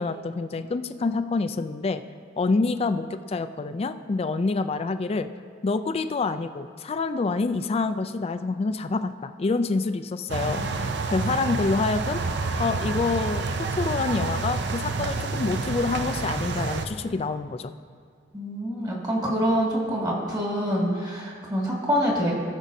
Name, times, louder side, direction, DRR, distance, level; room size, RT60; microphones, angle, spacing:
voice 1, 0.0-2.0 2.4-5.3 5.6-12.2 12.6-17.7, left 3 dB, 35° left, 9 dB, 0.3 m, -27 dB
sound 1, 10.3-16.9, right 3 dB, 65° right, 0.6 m, -28 dB
voice 2, 18.3-22.3, equal, 20° right, -4 dB, 2.0 m, -26 dB
18.5 x 6.2 x 2.7 m, 2.1 s
head